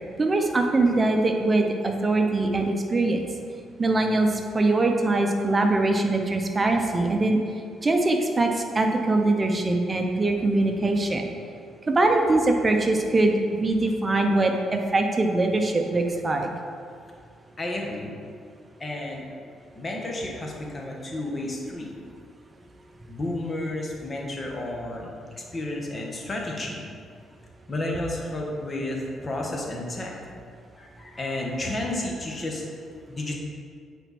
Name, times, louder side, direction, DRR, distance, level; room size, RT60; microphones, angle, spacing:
voice 1, 0.2-3.2 3.8-4.3 4.5-7.4 7.8-11.3 11.9-16.5, right 2 dB, 25° right, 3 dB, 0.8 m, -22 dB
voice 2, 17.6-18.1 18.8-19.2 19.7-21.9 23.1-26.9 27.7-30.1 30.7-32.6 33.1-33.4, left 1 dB, 30° left, -1 dB, 1.5 m, -31 dB
8.9 x 4.5 x 4.3 m, 2.2 s
cardioid pair, 90°, 0 cm